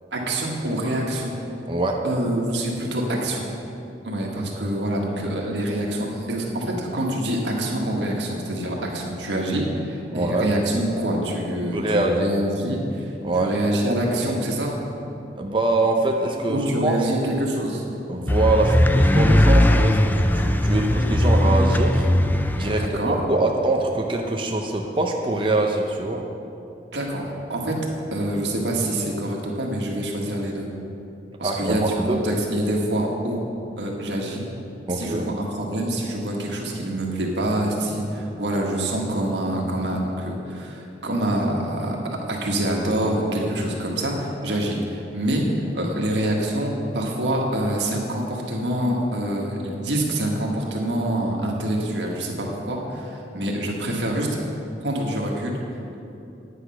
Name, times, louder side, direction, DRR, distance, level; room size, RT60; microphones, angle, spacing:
voice 1, 0.1-1.4 2.0-3.4 4.0-14.7 16.5-17.8 22.8-23.2 26.9-27.7 28.1-30.7 31.4-33.4 33.7-34.4 34.9-42.0 42.3-45.5 45.7-54.4 54.8-55.6, right 1 dB, 90° right, -1 dB, 1.7 m, -26 dB
voice 2, 1.7-2.0 10.1-10.5 11.7-12.3 13.2-13.5 15.4-17.1 18.1-22.1 22.5-26.3 31.4-32.2 34.9-35.3, right 2 dB, 30° right, 1 dB, 0.7 m, -24 dB
sound 1, 18.3-22.9, left 1 dB, 10° left, 0.3 m, -18 dB
9.9 x 8.5 x 5.7 m, 2.8 s
head